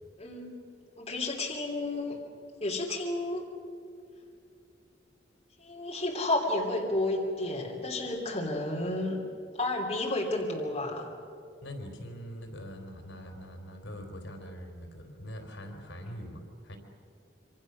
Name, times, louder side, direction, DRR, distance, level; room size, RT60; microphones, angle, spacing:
voice 1, 0.2-0.6 1.0-2.2 2.6-3.5 5.6-9.2 9.5-11.1, left 2 dB, 30° left, -2 dB, 3.0 m, -31 dB
voice 2, 11.6-16.8, equal, 75° left, 3 dB, 3.8 m, -43 dB
26.0 x 25.5 x 6.4 m, 2.4 s
head